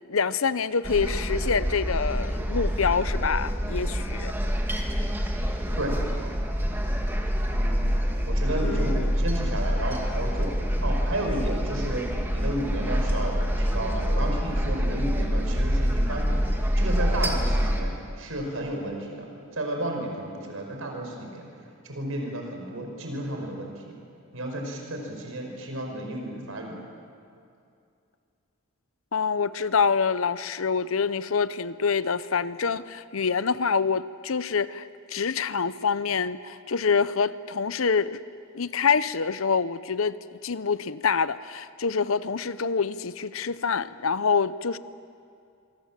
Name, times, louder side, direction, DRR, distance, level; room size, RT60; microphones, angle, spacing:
voice 1, 0.1-4.3 8.6-9.1 29.1-38.2 38.5-40.2 40.4-44.8, left 5 dB, 75° left, 15 dB, 0.7 m, -26 dB
sound 1, 0.8-17.8, equal, 10° right, 2.2 m, -26 dB
voice 2, 7.5-7.9 8.3-10.6 10.8-12.0 12.3-21.5 21.8-23.8 24.3-26.7, right 1 dB, 75° right, 2 dB, 5.3 m, -32 dB
26.0 x 23.5 x 7.5 m, 2.5 s
head